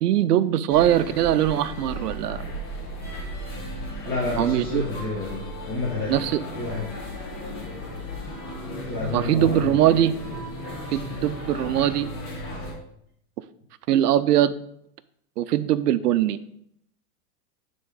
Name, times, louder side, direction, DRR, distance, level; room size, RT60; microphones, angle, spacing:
voice 1, 0.0-2.4 4.4-5.0 6.1-6.4 9.1-10.2 10.9-12.1 13.9-14.5 15.4-16.4, right 12 dB, 90° right, 14 dB, 0.6 m, -21 dB
sound 1, 0.7-12.7, equal, 45° left, 2.3 m, -35 dB
voice 2, 4.0-5.4 5.7-6.2 6.6-6.9 8.8-10.0, left 3 dB, 20° left, -6 dB, 1.7 m, -30 dB
10.0 x 3.8 x 3.9 m, 0.72 s
hypercardioid pair, 125°, 46 cm